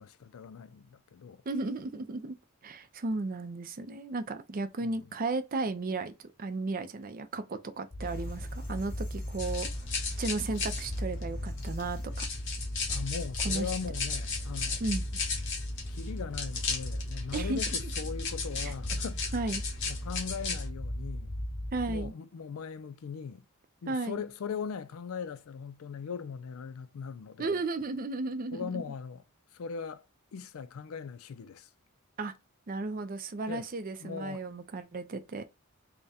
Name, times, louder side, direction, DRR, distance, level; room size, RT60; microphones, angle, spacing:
voice 1, 0.0-1.4 4.8-4.9 12.9-14.8 15.9-19.3 19.9-21.4 21.9-23.5 23.8-27.6 28.5-29.2 29.5-30.0 30.3-31.7 33.5-33.7 34.0-34.4, left 6 dB, 75° left, 0.4 m, -40 dB
voice 2, 1.5-2.4 2.6-9.7 10.2-12.3 13.4-13.7 14.8-15.2 17.3-17.6 18.6-18.7 19.3-19.6 21.7-22.1 23.9-24.2 27.4-28.8 32.2-32.3 32.7-35.4, right 3 dB, 40° right, 0.5 m, -34 dB
sound 1, 7.9-22.1, left 1 dB, 20° left, 0.5 m, -37 dB
sound 2, 8.0-12.8, equal, 40° left, 1.6 m, -54 dB
sound 3, 9.4-20.7, left 5 dB, 55° left, 1.1 m, -36 dB
3.5 x 2.2 x 4.1 m
head